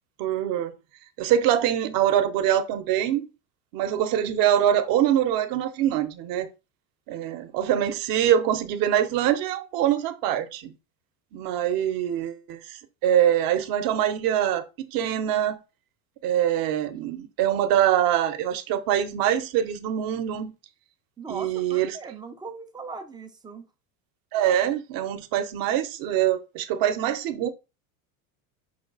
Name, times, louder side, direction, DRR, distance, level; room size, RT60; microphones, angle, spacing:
voice 1, 0.2-0.7 1.2-3.3 3.7-6.5 7.1-10.7 11.3-15.6 16.2-20.5 21.3-21.9 24.3-27.5, right 10 dB, 55° right, 0.8 m, -24 dB
voice 2, 21.2-23.7, right 4 dB, 10° right, 0.3 m, -39 dB
5.6 x 2.3 x 3.9 m
supercardioid pair, 130°, 43 cm